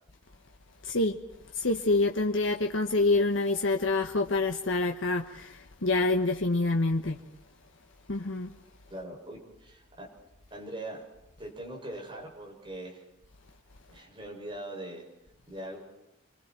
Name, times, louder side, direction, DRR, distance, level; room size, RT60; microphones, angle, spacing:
voice 1, 0.8-1.2 1.6-7.2 8.1-8.5, left 2 dB, 80° left, 1.3 m, -27 dB
voice 2, 8.9-10.1 10.5-11.0 11.4-13.0 13.9-15.1 15.5-15.8, right 1 dB, 25° right, 6.6 m, -41 dB
29.5 x 24.0 x 4.5 m
head